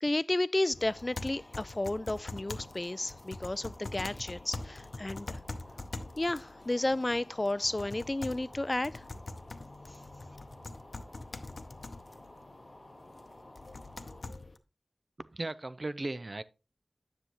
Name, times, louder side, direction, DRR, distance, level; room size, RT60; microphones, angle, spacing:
voice 1, 0.0-5.4 6.2-9.0, left 2 dB, 35° left, 0.3 m, -32 dB
sound 1, 0.7-14.6, left 2 dB, 80° left, 0.7 m, -44 dB
sound 2, 0.8-14.2, left 1 dB, 20° left, 2.0 m, -54 dB
voice 2, 15.2-16.4, right 2 dB, 50° right, 0.5 m, -37 dB
9.8 x 6.8 x 3.0 m
wide cardioid pair, 60°, 0 cm